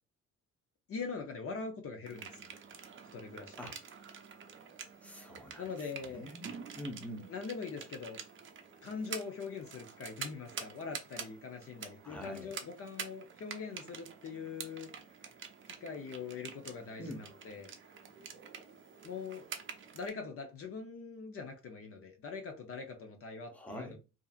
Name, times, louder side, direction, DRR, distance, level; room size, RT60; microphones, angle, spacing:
voice 1, 0.9-2.5 3.1-3.6 5.6-6.3 7.3-8.2 8.8-14.9 15.7-17.7 19.0-19.4 19.9-24.0, left 5 dB, 50° left, 0.6 m, -42 dB
sound 1, 2.1-20.1, right 6 dB, 40° right, 0.5 m, -48 dB
voice 2, 5.0-5.7 6.1-6.5 6.8-7.3 12.0-12.5 17.0-17.3 23.5-24.0, equal, 5° left, 0.7 m, -44 dB
2.7 x 2.5 x 2.3 m
cardioid pair, 90°, 30 cm